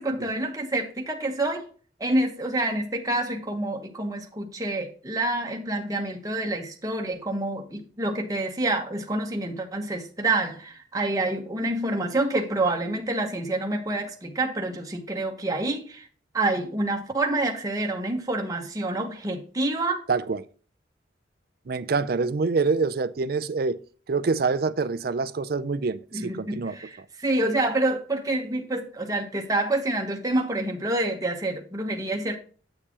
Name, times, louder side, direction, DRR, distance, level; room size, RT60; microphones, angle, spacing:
voice 1, 0.0-1.7 2.0-16.1 16.3-20.1 26.1-32.4, right 2 dB, 20° right, 1.1 m, -27 dB
voice 2, 20.1-20.4 21.7-23.8 24.1-26.8, right 4 dB, 55° right, 0.5 m, -26 dB
8.6 x 6.7 x 2.9 m
head